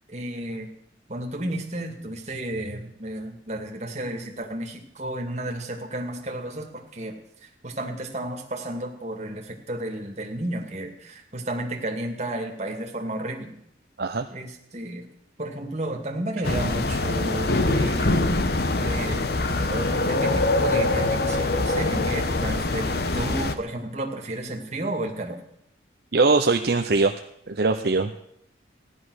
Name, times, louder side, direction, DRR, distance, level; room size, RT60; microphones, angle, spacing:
voice 1, 0.1-0.7 1.1-7.2 7.4-13.5 14.3-15.1 15.4-18.3 18.8-19.2 19.7-22.9 23.1-25.4, right 1 dB, 35° right, 2 dB, 2.2 m, -32 dB
sound 1, 16.4-23.5, left 2 dB, 55° left, 0.9 m, -24 dB
voice 2, 26.1-27.1 27.5-28.2, right 3 dB, 55° right, 5 dB, 0.7 m, -21 dB
16.0 x 11.0 x 6.3 m, 0.77 s
head